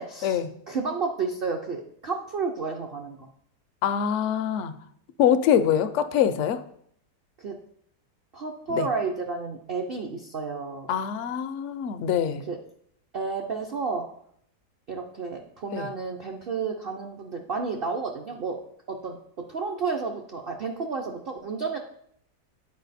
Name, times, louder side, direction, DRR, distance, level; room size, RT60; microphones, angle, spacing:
voice 1, 0.0-0.4 0.7-3.3 7.4-7.5 8.3-10.9 12.5-12.6 13.1-14.0 14.9-18.6 18.9-19.2 19.5-21.8, right 4 dB, 60° right, 1 dB, 0.6 m, -31 dB
voice 2, 3.8-4.8 5.2-6.6 8.7-8.9 10.9-12.5 15.7-15.9, left 9 dB, 70° left, 10 dB, 0.7 m, -24 dB
8.6 x 4.5 x 4.1 m, 0.67 s
omnidirectional pair, 1.7 m